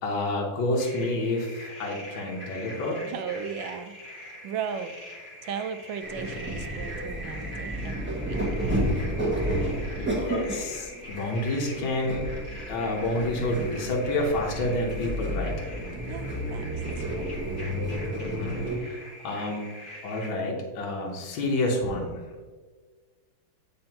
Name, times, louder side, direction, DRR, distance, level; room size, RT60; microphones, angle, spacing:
voice 1, 0.0-3.0 9.3-12.2 12.7-15.5 18.2-19.7 20.0-22.2, left 1 dB, 75° left, -1 dB, 1.8 m, -29 dB
sound 1, 0.8-20.3, left 1 dB, 35° left, 0.9 m, -44 dB
voice 2, 3.0-4.9 5.4-8.6 16.1-17.3, right 7 dB, 75° right, 9 dB, 1.2 m, -37 dB
sound 2, 6.0-18.8, right 1 dB, 10° right, 0.6 m, -31 dB
9.0 x 4.3 x 2.9 m, 1.4 s
omnidirectional pair, 2.2 m